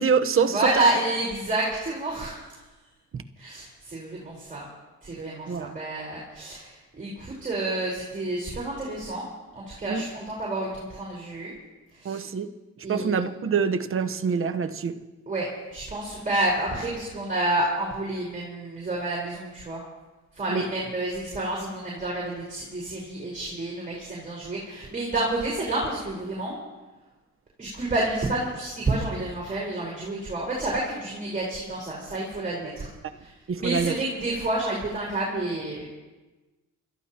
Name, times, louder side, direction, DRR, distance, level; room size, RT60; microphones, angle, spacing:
voice 1, 0.0-0.7 3.1-3.2 5.5-5.7 9.9-10.0 12.0-12.5 12.9-14.9 20.5-20.6 33.5-33.9, right 6 dB, 45° right, 8 dB, 1.1 m, -25 dB
voice 2, 0.5-2.5 3.4-4.6 5.0-9.3 9.5-11.5 12.0-12.2 12.8-13.2 15.3-19.8 20.4-26.6 27.6-32.9 33.2-33.3 33.6-35.9, right 2 dB, 25° right, -5 dB, 4.5 m, -29 dB
27.5 x 14.0 x 3.0 m, 1.2 s
cardioid pair, 90°, 30 cm